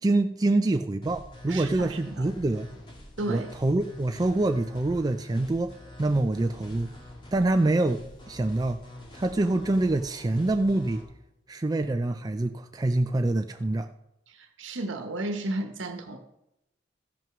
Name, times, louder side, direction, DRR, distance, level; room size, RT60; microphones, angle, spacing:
voice 1, 0.0-2.7 3.3-6.9 7.3-8.0 8.3-8.8 9.1-11.0 11.5-13.9, right 2 dB, 20° right, 6 dB, 0.4 m, -25 dB
sound 1, 1.0-11.0, left 1 dB, 25° left, 2.5 m, -46 dB
voice 2, 1.5-2.2 3.2-3.5 14.3-16.2, right 2 dB, 90° right, 5 dB, 1.0 m, -33 dB
14.0 x 6.1 x 5.9 m, 0.86 s
head